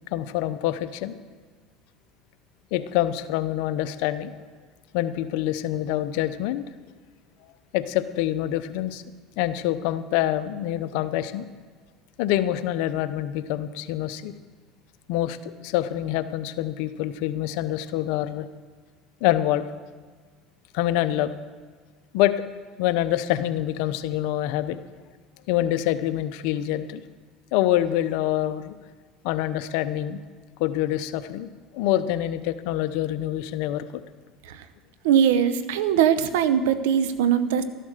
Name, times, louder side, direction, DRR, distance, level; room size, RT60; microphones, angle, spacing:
voice 1, 0.1-1.2 2.7-4.4 4.9-6.6 7.7-9.0 9.4-11.4 12.2-14.3 15.1-18.5 19.2-19.7 20.7-21.3 22.1-22.3 22.8-24.8 25.5-27.0 27.5-28.8 29.2-30.2 30.6-31.5 31.7-34.0, left 13 dB, 75° left, 12 dB, 0.8 m, -26 dB
voice 2, 35.0-37.6, right 9 dB, 85° right, 12 dB, 0.8 m, -21 dB
13.0 x 11.0 x 6.6 m, 1.5 s
supercardioid pair, 100°, 0 cm